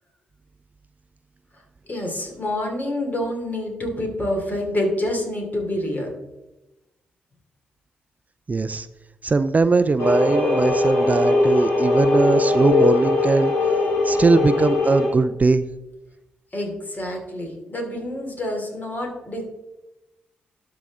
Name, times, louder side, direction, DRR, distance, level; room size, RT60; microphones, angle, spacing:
voice 1, 1.9-6.1 16.5-19.4, left 1 dB, 40° left, 1 dB, 3.1 m, -27 dB
voice 2, 8.5-8.9 9.2-13.5 14.0-15.6, right 3 dB, 35° right, 12 dB, 0.4 m, -20 dB
sound 1, 10.0-15.1, left 2 dB, 90° left, 2.5 m, -20 dB
12.0 x 4.9 x 3.6 m, 0.98 s
hypercardioid pair, 40°, 5 cm